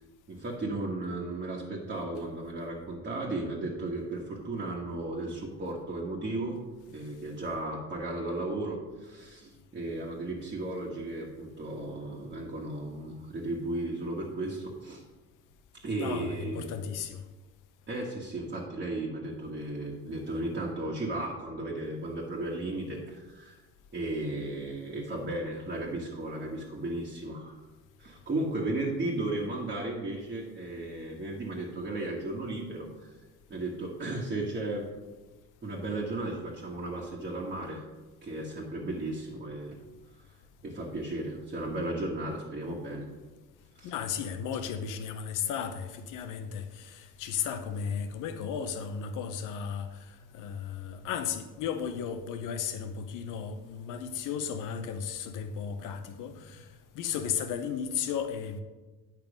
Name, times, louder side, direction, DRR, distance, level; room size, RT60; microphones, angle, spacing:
voice 1, 0.3-6.6 6.9-15.0 15.8-16.7 17.9-23.5 23.9-27.6 28.0-33.1 33.5-34.9 35.6-37.8 38.2-39.8 40.6-43.1 43.8-43.9, right 2 dB, 30° right, 1.5 m, -35 dB
voice 2, 16.0-17.2 43.8-56.7 56.9-58.6, left 7 dB, 85° left, 0.9 m, -35 dB
9.1 x 5.8 x 5.1 m
cardioid pair, 135°, 30 cm